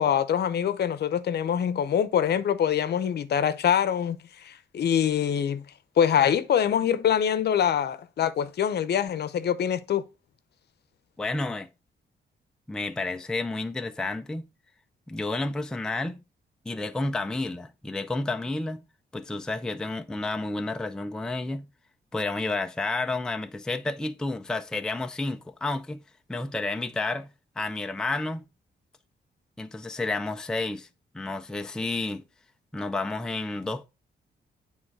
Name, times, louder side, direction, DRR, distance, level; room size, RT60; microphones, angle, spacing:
voice 1, 0.0-4.2 4.4-5.6 6.0-10.0, left 9 dB, 65° left, 0.7 m, -24 dB
voice 2, 11.2-11.7 12.7-14.4 15.1-16.2 16.7-18.8 19.1-21.7 22.1-26.0 26.3-27.3 27.6-28.4 29.6-30.9 31.1-32.2 32.7-33.9, left 2 dB, 5° left, 0.4 m, -30 dB
8.9 x 3.6 x 4.6 m
wide cardioid pair, 165°, 19 cm